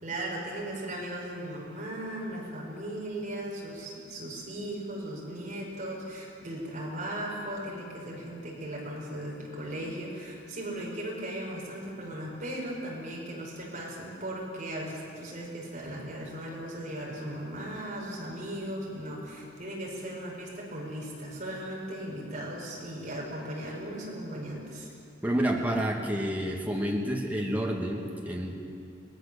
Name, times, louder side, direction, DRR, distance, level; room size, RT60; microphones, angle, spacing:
voice 1, 0.0-24.9, right 1 dB, 40° right, -3 dB, 5.2 m, -37 dB
voice 2, 25.2-28.5, equal, 10° right, -1 dB, 2.3 m, -29 dB
23.0 x 19.5 x 7.0 m, 2.5 s
head